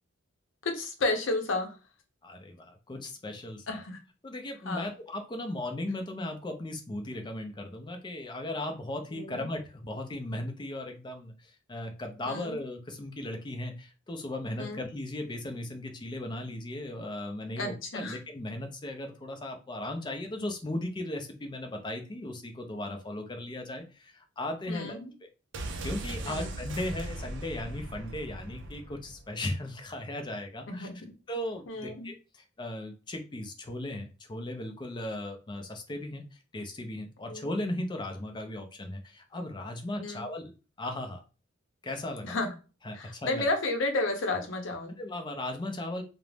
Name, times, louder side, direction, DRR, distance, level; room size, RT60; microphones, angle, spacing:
voice 1, 0.7-1.7 3.7-4.0 4.7-4.9 9.1-9.4 12.3-12.5 14.6-14.8 17.6-18.2 24.7-25.1 26.2-26.5 30.7-31.1 31.7-32.1 37.3-37.4 40.0-40.2 42.2-42.5 42.9-45.0, left 2 dB, 65° left, 4 dB, 0.7 m, -32 dB
voice 2, 2.2-3.6 4.2-25.0 25.8-30.9 31.3-41.2 41.8-42.4 42.8-43.5 45.0-46.0, left 1 dB, 20° left, 4 dB, 0.4 m, -37 dB
sound 1, 25.5-29.3 29.6-29.7, right 2 dB, 60° right, 0.4 m, -39 dB
2.5 x 2.0 x 3.2 m, 0.33 s
head